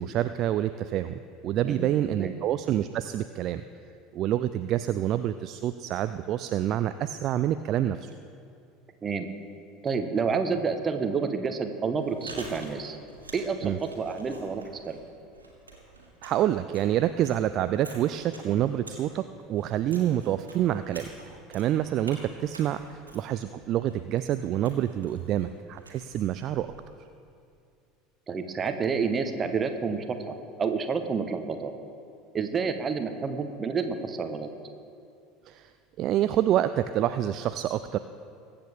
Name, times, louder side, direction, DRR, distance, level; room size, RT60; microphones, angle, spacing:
voice 1, 0.0-3.6 4.1-8.1 13.6-13.8 16.2-21.1 21.5-26.7 35.5-35.7 36.0-38.0, right 11 dB, 45° right, 11 dB, 0.3 m, -27 dB
voice 2, 1.6-2.3 9.0-9.3 9.8-13.0 13.3-15.0 28.3-31.7 32.3-34.5, right 5 dB, 30° right, 8 dB, 1.1 m, -29 dB
Chewing mastication, 11.9-26.9, right 2 dB, 85° right, 1.8 m, -49 dB
22.0 x 8.7 x 3.5 m, 2.5 s
figure-of-eight pair, 70°, 0 cm